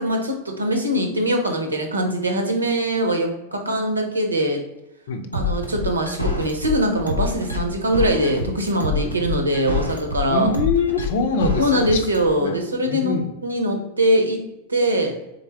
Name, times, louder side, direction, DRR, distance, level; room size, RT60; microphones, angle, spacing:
voice 1, 0.0-4.6 5.3-10.5 11.6-13.2 13.4-14.4 14.7-15.2, equal, 80° right, 3 dB, 0.9 m, -22 dB
sound 1, 5.3-12.3, left 3 dB, 90° left, 0.8 m, -26 dB
voice 2, 10.3-12.0 12.4-12.6 12.8-13.3, left 4 dB, 55° left, 6 dB, 0.6 m, -23 dB
4.0 x 3.7 x 3.4 m, 0.91 s
figure-of-eight pair, 90°, 0 cm